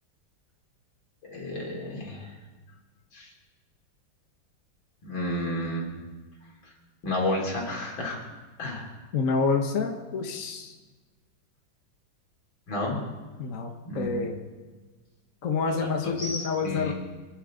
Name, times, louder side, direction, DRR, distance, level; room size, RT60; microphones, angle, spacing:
voice 1, 1.2-2.3 3.1-3.3 5.0-5.9 7.0-8.2 8.6-8.9 12.7-13.0 13.8-14.1 15.7-16.9, left 1 dB, 80° left, -1 dB, 4.1 m, -31 dB
voice 2, 9.1-10.7 13.4-14.4 15.4-16.9, left 4 dB, 45° left, 3 dB, 1.6 m, -28 dB
27.5 x 11.0 x 3.9 m, 1.3 s
omnidirectional pair, 2.1 m